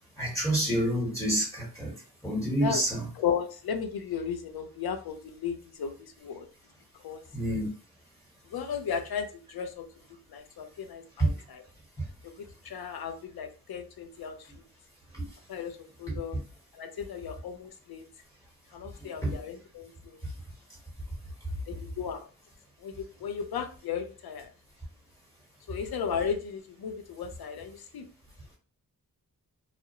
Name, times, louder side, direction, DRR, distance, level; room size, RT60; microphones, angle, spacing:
voice 1, 0.2-1.9 2.2-3.1 7.3-7.7 11.2-11.3 19.2-19.3, right 1 dB, 10° left, -3 dB, 1.1 m, -27 dB
voice 2, 3.2-6.5 7.0-7.2 8.5-9.9 10.3-11.6 12.2-14.5 15.5-16.4 16.7-18.1 18.7-20.2 21.7-22.3 22.8-24.5 25.7-28.0, left 7 dB, 75° left, 6 dB, 0.5 m, -35 dB
2.4 x 2.1 x 2.7 m, 0.37 s
wide cardioid pair, 85°, 37 cm